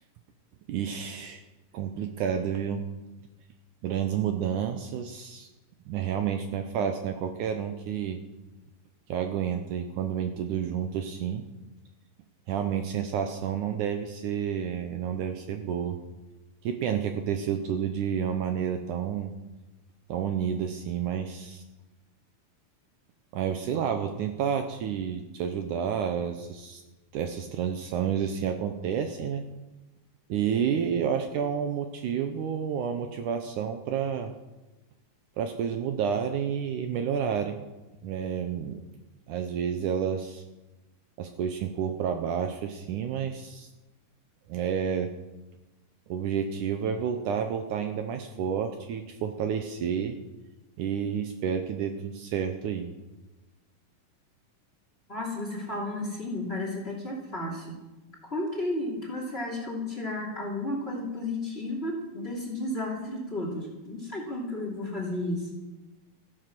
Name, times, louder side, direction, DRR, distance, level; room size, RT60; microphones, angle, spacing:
voice 1, 0.7-1.4 1.7-2.9 3.8-5.5 5.9-8.2 9.1-11.4 12.5-16.0 16.6-19.3 20.1-21.6 23.3-26.8 27.1-29.4 30.3-34.3 35.4-37.6 38.0-38.8 39.3-40.4 41.2-43.7 44.5-45.1 46.1-50.2 50.8-52.9, right 8 dB, 70° right, 6 dB, 2.2 m, -30 dB
voice 2, 55.1-57.8 58.2-65.5, left 1 dB, 20° left, 0 dB, 2.8 m, -33 dB
15.0 x 12.5 x 6.1 m, 1.1 s
omnidirectional pair, 4.0 m